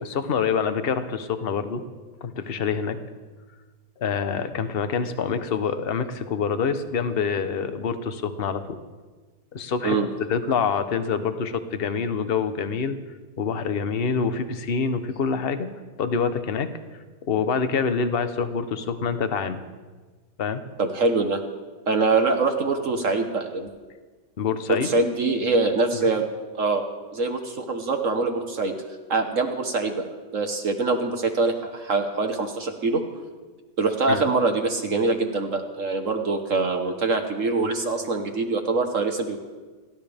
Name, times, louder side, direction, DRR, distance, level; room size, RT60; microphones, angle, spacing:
voice 1, 0.0-1.8 2.2-3.0 4.0-8.8 9.5-13.0 13.4-16.7 17.3-19.6 20.4-20.6 24.4-24.9 26.0-26.1 34.1-34.2, left 6 dB, 40° left, 9 dB, 0.9 m, -26 dB
voice 2, 20.8-21.4 21.9-23.7 24.7-26.3 26.5-26.8 27.1-28.7 29.1-30.0 30.3-33.0 33.8-39.4, right 3 dB, 50° right, 5 dB, 1.4 m, -24 dB
29.5 x 13.0 x 3.5 m, 1.4 s
omnidirectional pair, 1.9 m